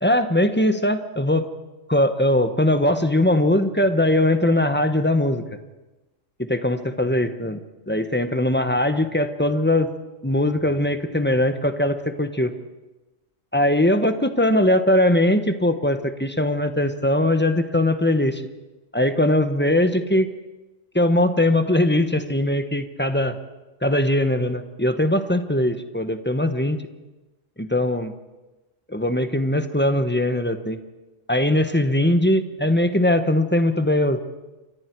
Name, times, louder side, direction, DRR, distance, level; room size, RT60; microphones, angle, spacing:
voice 1, 0.0-1.5 1.9-5.4 6.4-7.6 7.9-9.9 10.2-12.5 13.5-18.4 18.9-20.3 20.9-23.4 23.8-26.8 27.6-28.1 28.9-30.8 31.3-34.2, left 1 dB, 10° left, 8 dB, 1.1 m, -20 dB
29.0 x 24.0 x 4.7 m, 1.1 s
omnidirectional pair, 1.3 m